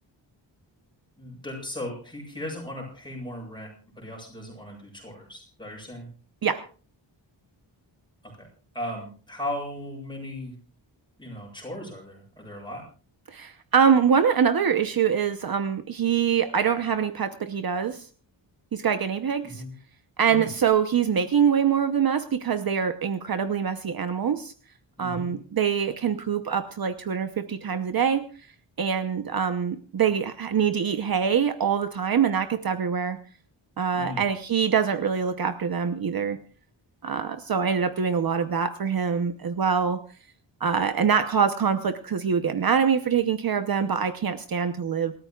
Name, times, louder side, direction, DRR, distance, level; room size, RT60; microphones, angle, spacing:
voice 1, 1.2-3.7 4.0-6.1 8.4-8.5 8.7-10.5 11.2-12.8 19.4-19.7 20.3-20.5 25.0-25.3 33.9-34.2, left 1 dB, 10° left, -1 dB, 7.8 m, -37 dB
voice 2, 13.3-18.1 18.7-19.6 20.2-24.5 25.0-28.2 28.8-33.2 33.8-36.4 37.0-40.0 40.6-45.1, right 7 dB, 50° right, 8 dB, 0.9 m, -24 dB
28.0 x 14.0 x 2.4 m, 0.39 s
wide cardioid pair, 175°, 45 cm